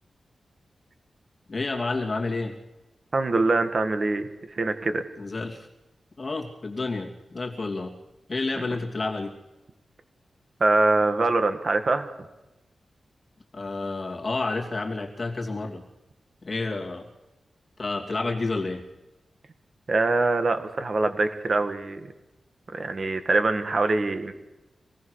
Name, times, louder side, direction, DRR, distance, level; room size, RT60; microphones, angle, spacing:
voice 1, 1.5-2.5 5.2-5.7 6.2-7.9 8.3-9.3 13.5-15.8 16.4-17.1 17.8-18.8, left 3 dB, 30° left, 0 dB, 2.8 m, -30 dB
voice 2, 3.1-5.1 10.6-12.1 19.9-22.1 22.7-24.3, right 3 dB, 40° right, 8 dB, 1.9 m, -24 dB
25.5 x 18.5 x 6.5 m, 1.0 s
wide cardioid pair, 155°, 0 cm